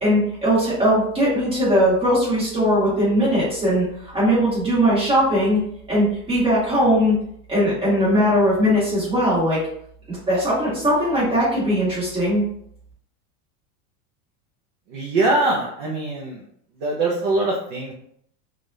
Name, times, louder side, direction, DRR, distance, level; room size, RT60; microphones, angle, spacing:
voice 1, 0.0-3.8 4.1-5.6 5.9-7.2 7.5-9.6 10.1-12.4, equal, 15° right, -10 dB, 1.3 m, -19 dB
voice 2, 14.9-16.4 16.8-17.9, right 2 dB, 35° right, -3 dB, 0.4 m, -22 dB
3.3 x 2.4 x 2.6 m, 0.68 s
supercardioid pair, 175°, 44 cm